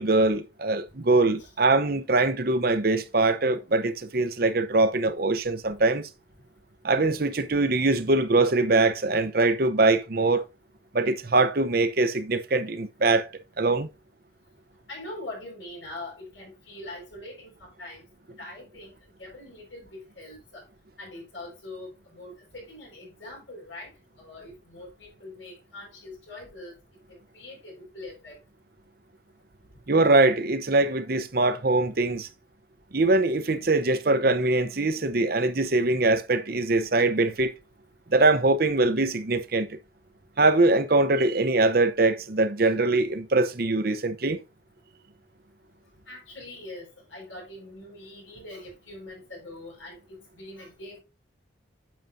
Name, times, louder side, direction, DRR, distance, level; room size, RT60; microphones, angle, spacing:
voice 1, 0.0-6.1 6.8-10.5 10.9-13.3 13.6-13.9 29.9-32.3 32.9-37.5 38.1-39.8 40.4-44.4, right 2 dB, 50° right, 0.8 m, -22 dB
voice 2, 14.9-18.0 18.4-18.9 19.2-20.6 21.0-23.9 24.2-26.8 27.1-28.4 46.1-51.0, left 2 dB, 85° left, 5.2 m, -43 dB
9.2 x 6.6 x 2.7 m
head